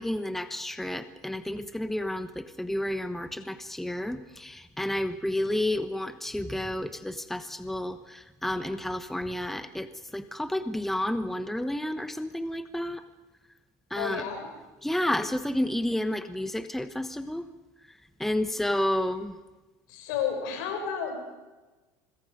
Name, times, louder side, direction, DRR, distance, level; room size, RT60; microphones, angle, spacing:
voice 1, 0.0-13.0 13.9-14.2 14.8-17.5 18.2-19.3, left 1 dB, 5° left, 11 dB, 1.2 m, -31 dB
voice 2, 13.9-14.5 19.9-21.1, left 7 dB, 80° left, 4 dB, 7.0 m, -31 dB
25.5 x 21.5 x 5.2 m, 1.2 s
supercardioid pair, 110°, 10 cm